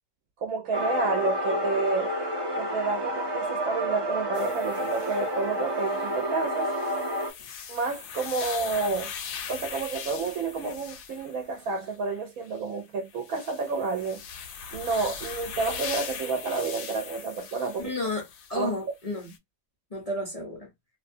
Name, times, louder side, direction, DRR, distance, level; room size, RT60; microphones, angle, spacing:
voice 1, 0.4-2.1 2.6-6.7 7.7-9.1 9.5-14.2 14.7-17.9 18.5-18.7, right 4 dB, 80° right, 1.0 m, -30 dB
sound 1, 0.7-7.3, equal, 45° right, 0.3 m, -29 dB
sound 2, 4.3-5.3 5.8-11.9 12.5-12.6 13.1-18.7 19.2-19.4, left 7 dB, 80° left, 1.0 m, -40 dB
voice 2, 17.8-19.3 19.9-20.7, left 2 dB, 35° left, 0.7 m, -32 dB
2.5 x 2.2 x 2.6 m
omnidirectional pair, 1.5 m